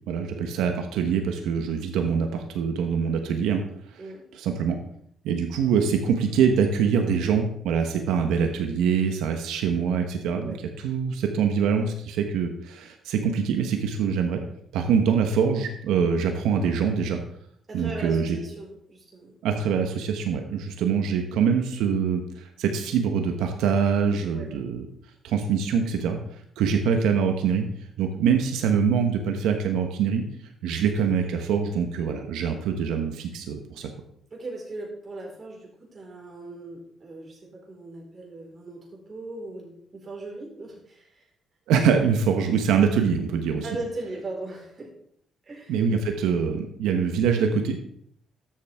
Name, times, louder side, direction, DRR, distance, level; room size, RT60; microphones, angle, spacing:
voice 1, 0.1-3.6 3.9-4.0 4.3-4.8 5.2-10.5 10.8-14.4 14.7-17.2 17.7-18.4 19.4-24.9 25.2-26.2 26.6-27.7 28.0-30.2 30.6-33.9 41.7-43.6 45.7-47.8, right 6 dB, 90° right, 5 dB, 1.1 m, -24 dB
voice 2, 17.7-19.5 24.3-24.5 34.3-41.3 43.6-44.9 45.4-46.0, right 2 dB, 40° right, -2 dB, 4.6 m, -39 dB
12.5 x 7.5 x 3.6 m, 0.69 s
cardioid pair, 90°, 0 cm